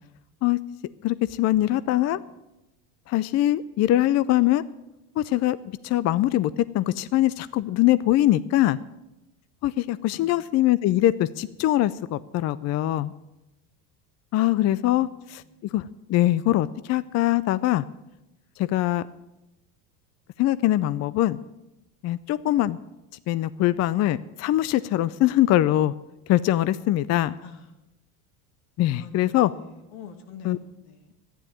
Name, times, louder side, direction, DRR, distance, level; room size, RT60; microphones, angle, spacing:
voice 1, 1.0-2.2 3.1-4.6 5.2-5.6 5.8-8.8 9.6-13.1 14.3-17.8 18.6-19.0 20.4-21.4 22.0-22.8 23.3-25.9 26.3-27.4 28.8-29.5 30.4-30.6, left 14 dB, 40° left, 17 dB, 0.4 m, -22 dB
voice 2, 1.6-2.3 10.1-10.5 15.0-15.7 17.0-17.1 27.4-27.7 28.9-31.1, left 6 dB, 80° left, 7 dB, 2.1 m, -47 dB
11.5 x 10.0 x 8.7 m, 0.95 s
supercardioid pair, 105°, 45 cm